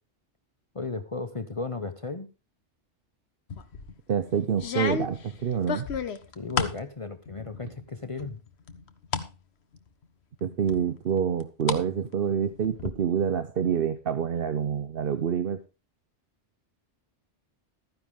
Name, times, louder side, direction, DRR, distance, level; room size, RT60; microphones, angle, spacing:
voice 1, 0.7-2.3 6.3-8.4, left 3 dB, 35° left, 10 dB, 0.8 m, -35 dB
sound 1, 3.5-3.9 4.6-6.8 7.3-7.8 8.2-9.3 9.7-9.8 10.7-11.8 12.1-12.9, left 6 dB, 65° left, 1.2 m, -32 dB
voice 2, 4.1-5.9 10.4-15.6, right 8 dB, 55° right, 10 dB, 0.9 m, -27 dB
13.5 x 9.9 x 3.6 m, 0.29 s
omnidirectional pair, 1.2 m